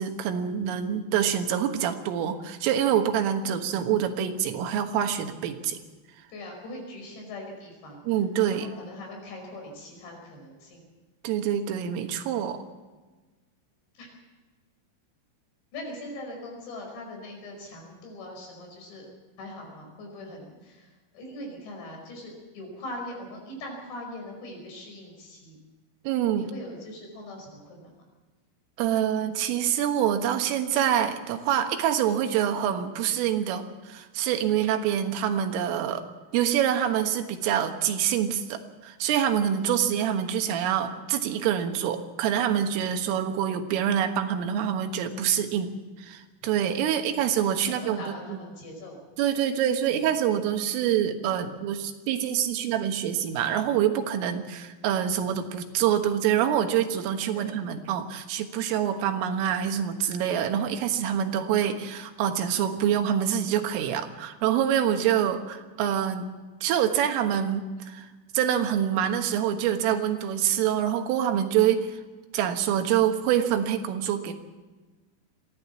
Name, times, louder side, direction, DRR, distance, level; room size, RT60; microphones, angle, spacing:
voice 1, 0.0-5.8 8.1-8.7 11.2-12.6 26.1-26.5 28.8-36.0 36.3-48.4 49.2-66.3 66.6-68.1 68.3-72.0 72.3-74.3, right 9 dB, 90° right, 6 dB, 4.0 m, -26 dB
voice 2, 6.3-8.0 8.5-10.8 14.0-14.1 15.7-19.1 19.4-20.9 21.1-25.6 26.4-27.9 39.5-39.7 42.8-42.9 46.9-47.2 47.7-49.0 57.3-57.5 60.7-60.8 64.9-65.0, left 1 dB, 60° left, 1 dB, 7.5 m, -41 dB
22.5 x 15.5 x 7.3 m, 1.3 s
omnidirectional pair, 5.7 m